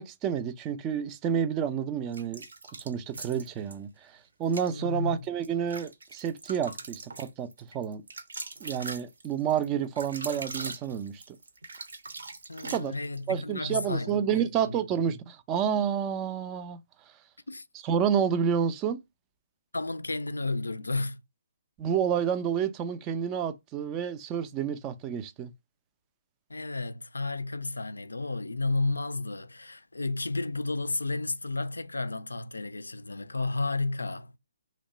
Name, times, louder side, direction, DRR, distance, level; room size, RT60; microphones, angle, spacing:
voice 1, 0.0-2.4 2.7-8.0 8.6-11.4 12.7-12.9 13.3-16.8 17.8-19.0 21.8-25.5, right 8 dB, 20° right, 0.3 m, -29 dB
sound 1, 2.1-3.8 4.4-4.7 5.2-13.2, right 3 dB, 60° right, 0.6 m, -41 dB
voice 2, 4.7-5.2 12.5-14.8 17.5-17.6 19.7-21.2 26.5-34.3, left 3 dB, 75° left, 0.3 m, -32 dB
2.8 x 2.1 x 3.8 m
figure-of-eight pair, 135°, 0 cm